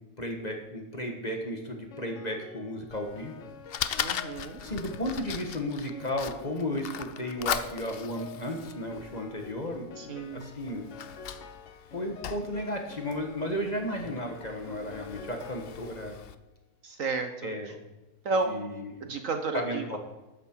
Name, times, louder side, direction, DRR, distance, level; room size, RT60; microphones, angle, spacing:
voice 1, 0.2-3.4 4.6-10.9 11.9-16.2 17.4-17.8 18.4-18.9 19.5-20.0, equal, 25° left, 3 dB, 1.5 m, -34 dB
Piano, 1.9-16.3, left 6 dB, 50° left, 1.0 m, -48 dB
Fire, 2.9-16.3, left 9 dB, 85° left, 0.5 m, -39 dB
voice 2, 4.0-4.6 10.0-10.5 16.8-17.5 18.2-18.6 19.1-19.8, right 3 dB, 55° right, 7 dB, 1.2 m, -31 dB
13.0 x 9.5 x 4.6 m, 1.1 s
omnidirectional pair, 1.8 m